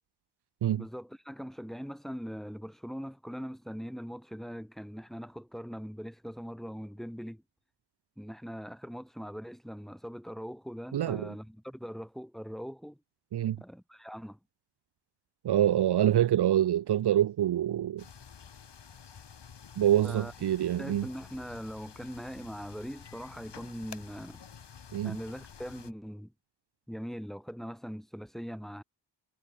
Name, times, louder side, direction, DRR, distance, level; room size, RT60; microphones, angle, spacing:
voice 1, 0.7-7.4 8.2-13.0 13.6-14.4 20.0-20.3 20.8-24.4 25.0-26.3 26.9-28.8, equal, ahead, 2.3 m, -41 dB
voice 2, 10.9-11.3 13.3-13.6 15.4-18.0 19.8-21.0 24.9-25.2, right 11 dB, 65° right, 0.7 m, -26 dB
sound 1, 18.0-25.9, left 7 dB, 70° left, 5.8 m, -50 dB
cardioid pair, 50°, 43 cm